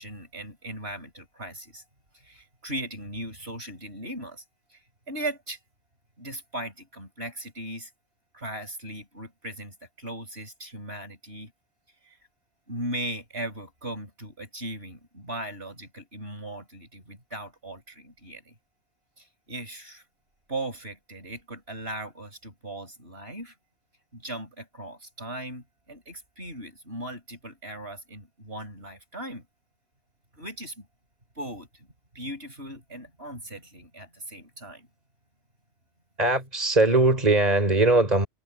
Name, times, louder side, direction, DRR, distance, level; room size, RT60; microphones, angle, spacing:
voice 1, 0.0-1.8 2.1-4.4 4.7-4.8 5.1-5.6 6.2-7.9 8.3-11.5 12.0-12.2 12.7-18.5 19.2-20.0 20.5-23.5 24.1-29.5 30.3-30.9 31.4-31.9 32.1-34.9, right 1 dB, 55° right, 6.0 m, -38 dB
voice 2, 36.2-38.3, right 2 dB, 35° right, 4.8 m, -20 dB
omnidirectional pair, 1.2 m